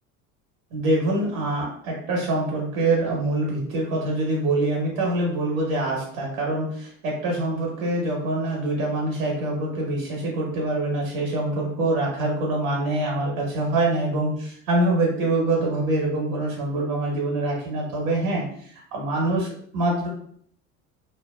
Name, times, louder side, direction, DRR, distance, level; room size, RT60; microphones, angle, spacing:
voice 1, 0.7-20.1, right 2 dB, 70° right, -2 dB, 1.2 m, -25 dB
2.7 x 2.2 x 2.4 m, 0.62 s
hypercardioid pair, 75°, 41 cm